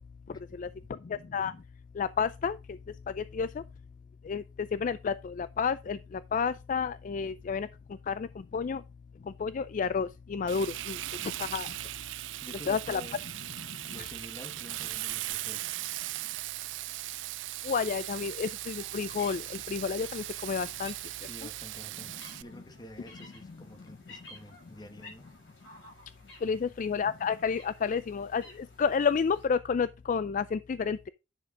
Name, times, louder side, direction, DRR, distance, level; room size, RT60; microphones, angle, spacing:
voice 1, 1.1-1.5 2.0-2.6 3.2-3.5 4.3-4.4 4.7-6.0 6.3-7.7 8.1-8.3 8.5-8.8 9.4-11.0 11.4-11.7 12.7-13.0 14.0-14.1 17.6-20.9 26.4-31.1, left 6 dB, 45° left, 0.3 m, -30 dB
Frying (food), 10.5-22.4, right 16 dB, 80° right, 0.4 m, -38 dB
voice 2, 12.4-13.2 13.9-15.8 21.2-25.3 26.4-26.6, equal, 25° left, 1.4 m, -49 dB
sound 1, 18.5-29.4, left 2 dB, 65° left, 5.8 m, -55 dB
9.9 x 6.5 x 3.7 m
head